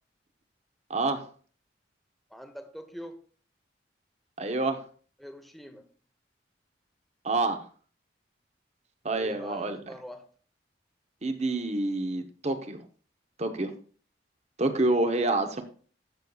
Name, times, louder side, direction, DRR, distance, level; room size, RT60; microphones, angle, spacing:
voice 1, 0.9-1.2 4.4-4.8 7.2-7.6 9.0-9.8 11.2-12.8 13.4-13.7 14.6-15.6, right 2 dB, 35° right, 8 dB, 0.9 m, -27 dB
voice 2, 2.3-3.2 5.2-5.9 9.1-10.3 15.0-15.1, equal, ahead, 6 dB, 0.8 m, -43 dB
14.0 x 6.4 x 2.3 m, 0.42 s
head